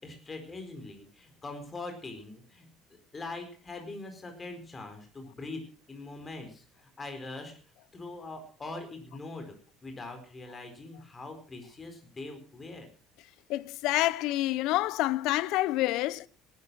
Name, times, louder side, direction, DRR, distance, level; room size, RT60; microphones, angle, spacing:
voice 1, 0.0-7.6 7.9-9.6 9.8-12.9, left 2 dB, 20° left, 4.6 m, -42 dB
voice 2, 13.5-16.3, left 16 dB, 70° left, 0.7 m, -28 dB
18.5 x 11.5 x 6.2 m
cardioid pair, 135°, 0 cm